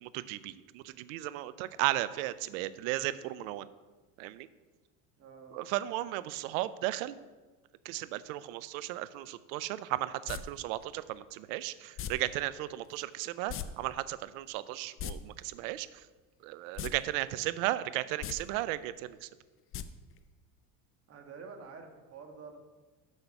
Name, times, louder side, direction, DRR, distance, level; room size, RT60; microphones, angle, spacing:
voice 1, 0.0-3.7 4.2-4.5 5.5-7.2 7.9-15.9 16.4-19.3, right 15 dB, 85° right, 16 dB, 0.5 m, -35 dB
voice 2, 5.2-5.7 21.1-22.6, right 5 dB, 35° right, 4 dB, 1.4 m, -48 dB
sound 1, 10.3-10.4 12.0-12.1 13.5-13.7 13.9-14.0 14.8-15.1 16.7-16.9 17.3-17.4 18.1-18.3 19.7-19.8 20.2-20.3, left 10 dB, 35° left, 0.4 m, -37 dB
6.6 x 6.3 x 5.8 m, 1.3 s
supercardioid pair, 120°, 40 cm